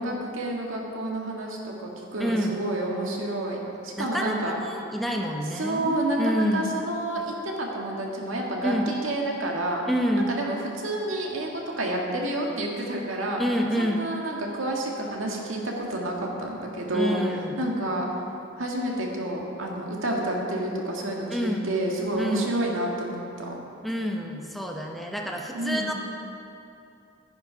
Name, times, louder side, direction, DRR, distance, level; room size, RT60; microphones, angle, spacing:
voice 1, 0.0-3.6 3.8-4.5 5.5-9.9 10.3-13.4 13.8-17.2 17.6-18.1 18.6-23.5 25.5-25.9, right 1 dB, 85° right, -1 dB, 1.9 m, -29 dB
voice 2, 2.2-2.6 4.0-6.8 8.6-8.9 9.9-10.5 13.4-14.1 16.9-17.6 21.3-21.7 22.2-22.5 23.8-25.9, equal, ahead, 0 dB, 0.8 m, -28 dB
11.5 x 10.5 x 5.2 m, 2.7 s
head